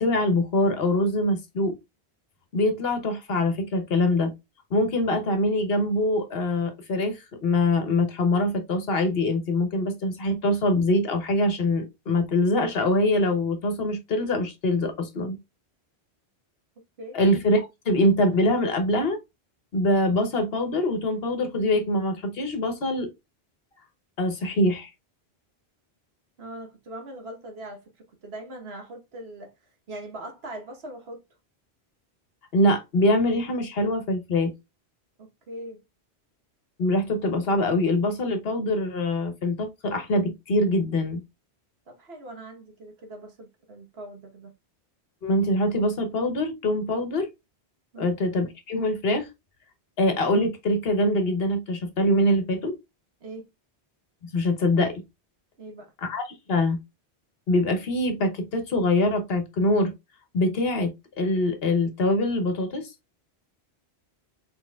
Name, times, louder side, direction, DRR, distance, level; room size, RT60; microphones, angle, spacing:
voice 1, 0.0-1.7 2.5-4.3 4.7-15.4 17.1-19.2 19.7-23.1 24.2-24.9 32.5-34.5 36.8-41.2 45.2-47.3 48.0-49.3 50.0-52.7 54.3-55.0 56.0-56.8 57.5-59.9 60.3-62.9, left 1 dB, 65° left, 1.2 m, -24 dB
voice 2, 26.4-27.8 28.2-29.5 29.9-31.2 35.2-35.8 41.9-44.5 47.9-48.1 53.2-53.5 55.6-55.9, right 1 dB, 70° right, 1.5 m, -41 dB
4.4 x 4.4 x 2.3 m
omnidirectional pair, 1.1 m